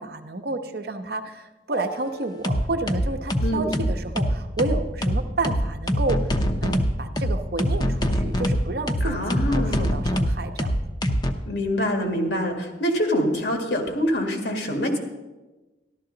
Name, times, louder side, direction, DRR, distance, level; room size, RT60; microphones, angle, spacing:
voice 1, 0.0-6.2 6.6-10.7, right 2 dB, 60° right, 6 dB, 0.8 m, -30 dB
sound 1, 1.7-2.0 2.4-11.3, equal, 25° left, 0.6 m, -23 dB
voice 2, 9.0-9.9 11.5-15.0, equal, 80° left, 3 dB, 1.9 m, -25 dB
13.5 x 12.0 x 3.9 m, 1.1 s
head